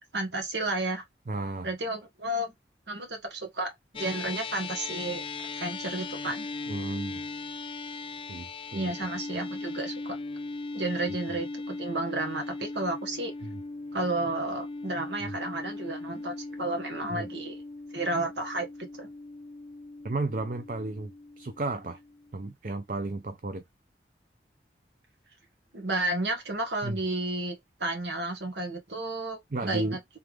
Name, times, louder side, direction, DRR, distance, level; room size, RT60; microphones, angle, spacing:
voice 1, 0.1-1.0 1.6-2.5 2.9-5.2 5.5-6.5 8.7-10.2 10.7-13.3 13.9-17.6 17.9-19.1 25.7-30.0, right 2 dB, 85° right, 1.4 m, -32 dB
voice 2, 1.3-1.7 6.7-7.2 8.3-8.9 11.1-11.2 13.4-13.6 15.2-15.3 17.1-17.3 20.0-22.0 22.3-23.6 26.8-27.0 29.5-30.0, right 2 dB, 50° right, 0.5 m, -33 dB
sound 1, 3.9-22.5, left 3 dB, 30° left, 0.3 m, -39 dB
3.4 x 3.3 x 3.4 m
head